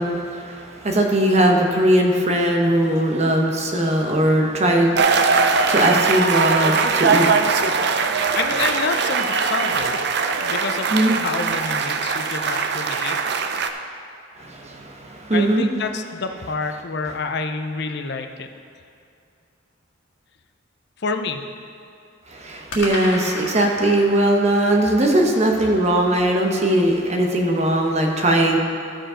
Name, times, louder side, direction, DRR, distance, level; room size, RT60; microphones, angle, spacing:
voice 1, 0.0-8.2 10.9-11.1 14.4-15.7 22.3-28.6, right 1 dB, 35° right, 1 dB, 1.0 m, -20 dB
sound 1, 5.0-13.7, right 5 dB, 60° right, 0.5 m, -21 dB
voice 2, 8.3-10.0 10.4-13.2 15.3-18.5 21.0-21.4, left 4 dB, 60° left, 6 dB, 0.6 m, -28 dB
sound 2, 15.0-16.9 22.7-27.0, left 1 dB, 85° left, 1.6 m, -37 dB
13.5 x 5.2 x 5.0 m, 2.5 s
head